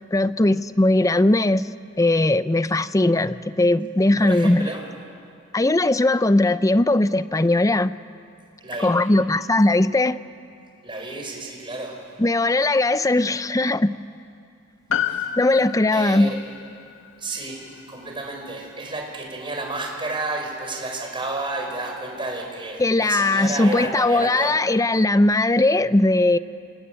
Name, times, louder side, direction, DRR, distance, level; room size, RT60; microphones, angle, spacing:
voice 1, 0.1-4.7 5.5-7.9 8.8-10.2 12.2-13.9 15.4-16.3 22.8-26.4, left 2 dB, 15° left, 0.6 m, -19 dB
voice 2, 4.2-4.8 8.6-8.9 10.8-12.0 14.9-15.3 15.9-16.3 17.2-24.6, right 2 dB, 25° right, 4.9 m, -31 dB
Piano, 14.9-19.5 19.8-19.9, left 9 dB, 85° left, 1.2 m, -32 dB
27.0 x 21.0 x 9.2 m
head